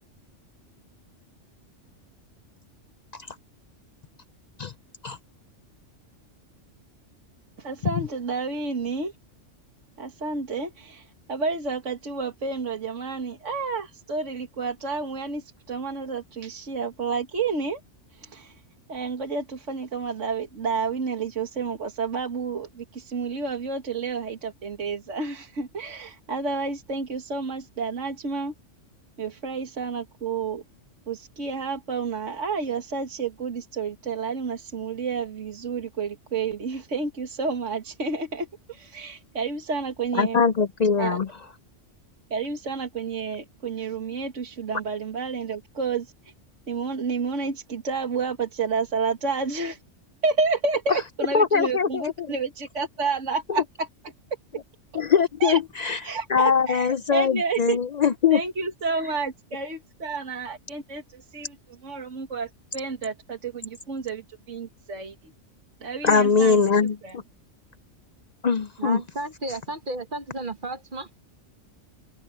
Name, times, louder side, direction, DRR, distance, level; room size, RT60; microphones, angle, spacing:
voice 1, 7.6-9.1 10.0-17.8 18.1-18.5 18.9-28.5 29.2-30.6 31.1-40.4 41.0-41.2 42.3-46.1 46.7-49.8 50.2-53.9 55.4-55.6 56.0-57.8 58.3-61.6 61.8-64.2 64.5-65.2 65.8-66.6 67.0-67.2, right 4 dB, 70° right, 2.2 m, -30 dB
voice 2, 40.1-41.3 51.3-52.3 54.9-58.4 66.0-67.2 68.4-69.0, left 6 dB, 65° left, 0.4 m, -22 dB
voice 3, 68.8-71.1, right 2 dB, 45° right, 1.2 m, -33 dB
omnidirectional pair, 1.3 m